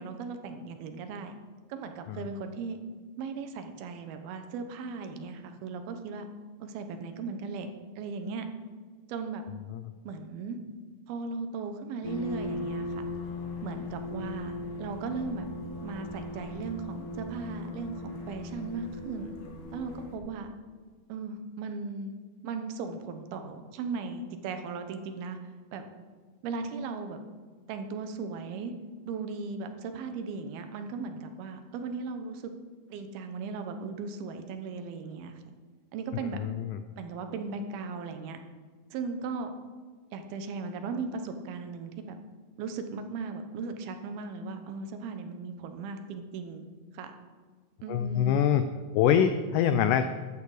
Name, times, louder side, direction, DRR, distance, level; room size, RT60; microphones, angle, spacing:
voice 1, 0.0-1.3 1.7-2.8 3.2-6.3 6.6-7.7 8.0-8.5 9.1-9.4 10.0-10.6 11.1-13.0 13.6-14.5 14.8-15.5 15.8-19.4 19.7-20.5 21.1-22.1 22.4-25.4 25.7-25.8 26.4-27.2 27.7-28.7 29.1-32.5 32.9-35.3 35.9-36.4 37.0-38.4 38.9-39.5 40.1-42.2 42.6-46.7 46.9-47.1 47.8-48.4, right 4 dB, 80° right, 7 dB, 2.9 m, -37 dB
sound 1, 12.0-20.2, left 2 dB, 60° left, 3.3 m, -38 dB
voice 2, 36.3-36.8 47.9-48.7 48.9-50.0, left 9 dB, 85° left, 10 dB, 1.8 m, -24 dB
14.0 x 11.5 x 4.9 m, 1.5 s
omnidirectional pair, 4.4 m